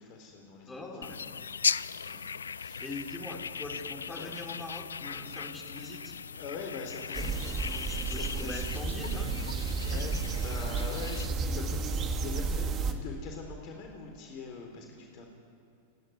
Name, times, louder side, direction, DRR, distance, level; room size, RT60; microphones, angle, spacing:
voice 1, 0.0-1.3 2.0-2.2 2.5-3.0 3.7-3.8 4.1-4.3 6.3-8.6 9.0-9.1 9.6-15.3, left 4 dB, 40° left, 2 dB, 3.6 m, -43 dB
voice 2, 0.7-1.2 2.8-6.2 7.8-9.3 9.9-10.2, left 2 dB, 15° left, 0 dB, 4.8 m, -42 dB
sound 1, 1.0-11.3, left 6 dB, 70° left, 0.4 m, -37 dB
sound 2, 7.1-12.9, right 4 dB, 30° right, 2.2 m, -32 dB
28.5 x 11.0 x 9.9 m, 2.8 s
figure-of-eight pair, 90°, 0 cm